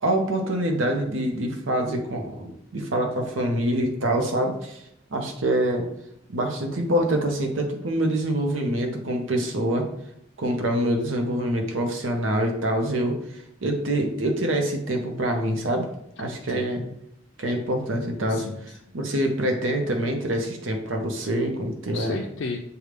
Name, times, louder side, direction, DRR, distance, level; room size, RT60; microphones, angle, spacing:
voice 1, 0.0-4.8 5.1-5.9 6.3-9.9 10.4-13.2 13.6-15.9 16.2-16.8 17.4-18.5 18.9-22.2, right 1 dB, 85° right, 3 dB, 0.8 m, -25 dB
voice 2, 16.5-16.9 18.3-19.0 21.9-22.6, left 4 dB, 75° left, 0 dB, 0.4 m, -34 dB
6.5 x 2.3 x 3.3 m, 0.76 s
head